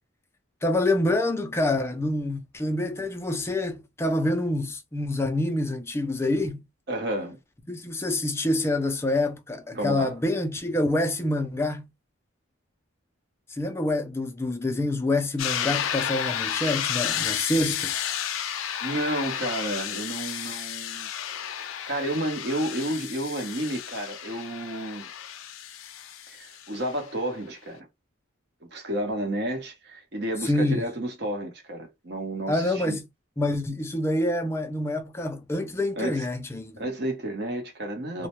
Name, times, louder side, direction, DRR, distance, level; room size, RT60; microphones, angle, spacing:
voice 1, 0.6-6.6 7.7-11.8 13.5-17.9 30.4-30.8 32.5-33.0 33.4-36.8, left 1 dB, 15° left, 0.3 m, -26 dB
voice 2, 6.9-7.4 9.7-10.1 18.8-21.1 21.6-25.1 26.3-27.9 28.7-33.0 36.0-36.2 36.8-38.3, right 1 dB, 55° right, 0.8 m, -31 dB
sound 1, 15.4-27.0, left 9 dB, 85° left, 0.4 m, -32 dB
2.1 x 2.1 x 2.9 m
head